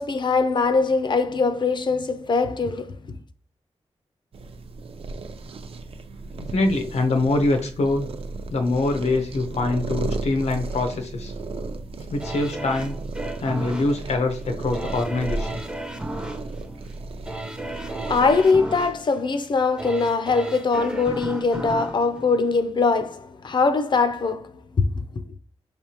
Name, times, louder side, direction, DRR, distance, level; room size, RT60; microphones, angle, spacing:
voice 1, 0.0-3.0 18.0-24.5 24.8-24.9 25.2-25.3, left 4 dB, 45° left, 0.5 m, -22 dB
sound 1, 4.3-18.5, right 3 dB, 60° right, 0.5 m, -35 dB
voice 2, 6.3-8.1 8.5-11.3 12.1-13.0 13.4-15.6, left 2 dB, 80° left, 0.8 m, -24 dB
sound 2, 12.2-23.2 23.6-23.7, right 1 dB, 10° right, 0.5 m, -35 dB
5.2 x 3.3 x 2.9 m
wide cardioid pair, 155°, 11 cm